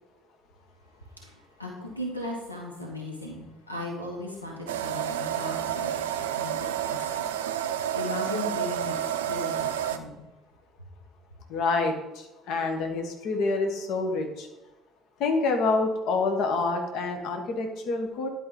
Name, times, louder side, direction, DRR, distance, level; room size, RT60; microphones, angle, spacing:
voice 1, 1.2-9.0 9.2-10.3, left 2 dB, 90° left, 0 dB, 1.0 m, -37 dB
sound 1, 4.7-10.0, right 10 dB, 75° right, 0.4 m, -30 dB
voice 2, 11.5-11.9 12.5-14.5 15.2-18.3, left 3 dB, 55° left, 4 dB, 1.1 m, -27 dB
10.5 x 4.6 x 3.8 m, 0.99 s
figure-of-eight pair, 55°, 0 cm